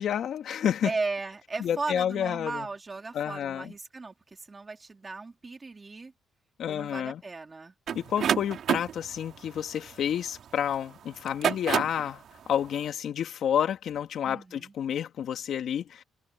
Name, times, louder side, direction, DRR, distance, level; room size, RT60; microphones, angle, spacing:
voice 1, 0.0-0.9 1.6-2.7 3.1-3.7 6.6-7.2 7.9-16.0, left 9 dB, 70° left, 2.4 m, -30 dB
voice 2, 0.8-6.1 6.7-7.7 14.2-14.7, right 3 dB, 25° right, 3.1 m, -36 dB
sound 1, 7.9-10.6 11.2-12.1, right 9 dB, 65° right, 2.7 m, -29 dB
cardioid pair, 90°, 0 cm